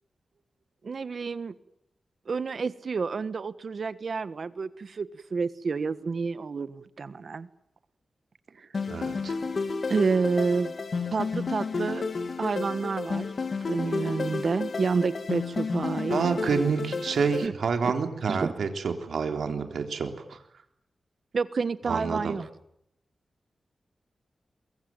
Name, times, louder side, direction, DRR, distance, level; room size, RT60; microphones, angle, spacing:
voice 1, 0.8-1.5 2.3-7.5 8.5-8.7 9.9-10.7 11.1-12.0 12.4-13.3 13.7-16.2 17.4-17.5 17.8-17.9 18.3-18.5 21.3-22.5, right 4 dB, 55° right, 14 dB, 1.3 m, -29 dB
sound 1, 8.7-17.5, left 4 dB, 50° left, 2.5 m, -31 dB
voice 2, 8.9-9.4 16.1-20.4 21.9-22.3, right 5 dB, 80° right, 6 dB, 3.8 m, -28 dB
23.5 x 23.0 x 9.1 m, 0.76 s
wide cardioid pair, 135°, 0 cm